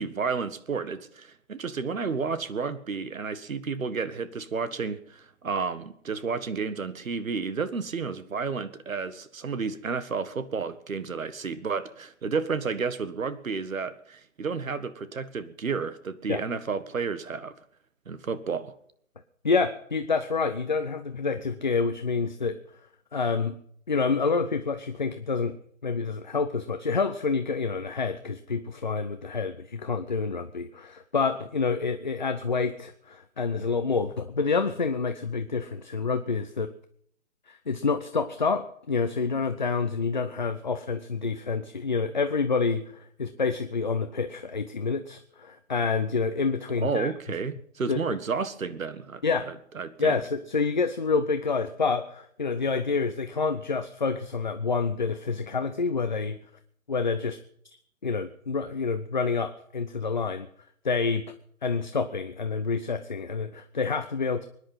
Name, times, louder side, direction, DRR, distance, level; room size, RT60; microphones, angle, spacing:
voice 1, 0.0-17.5 18.0-18.7 46.8-50.1, right 5 dB, 80° right, 13 dB, 1.8 m, -31 dB
voice 2, 19.4-22.6 23.1-23.6 23.9-25.6 25.8-36.7 37.5-47.1 47.9-48.0 49.2-49.5 50.0-56.4 56.9-57.4 58.0-60.5 60.8-61.2 61.6-64.5, left 4 dB, 35° left, 8 dB, 0.7 m, -28 dB
24.0 x 10.5 x 5.7 m, 0.64 s
hypercardioid pair, 175°, 40 cm